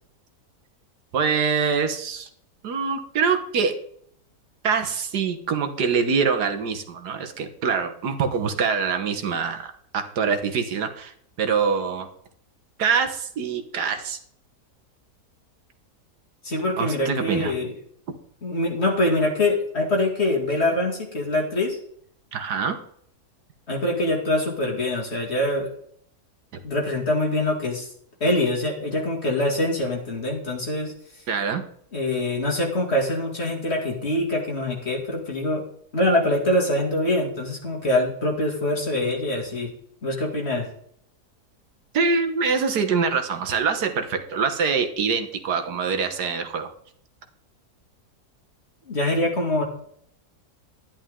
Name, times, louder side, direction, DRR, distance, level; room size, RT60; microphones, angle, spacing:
voice 1, 1.1-2.3 2.6-3.7 4.6-12.1 12.8-14.2 16.8-17.5 22.3-22.8 31.3-31.6 41.9-46.7, right 5 dB, 80° right, 7 dB, 1.7 m, -24 dB
voice 2, 16.4-17.7 18.4-21.8 23.7-25.7 26.6-27.9 28.2-30.9 31.9-35.6 35.9-39.7 40.0-40.7 48.9-49.6, left 1 dB, 40° left, -1 dB, 2.9 m, -24 dB
12.0 x 10.5 x 3.7 m, 0.64 s
omnidirectional pair, 1.7 m